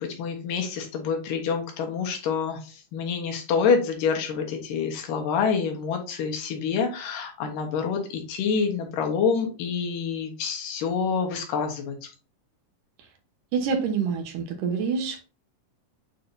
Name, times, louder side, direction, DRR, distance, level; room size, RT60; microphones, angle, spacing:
voice 1, 0.0-12.1, left 6 dB, 80° left, 3 dB, 2.9 m, -27 dB
voice 2, 13.5-15.2, right 6 dB, 80° right, 4 dB, 2.8 m, -26 dB
8.5 x 4.1 x 2.7 m, 0.34 s
omnidirectional pair, 3.8 m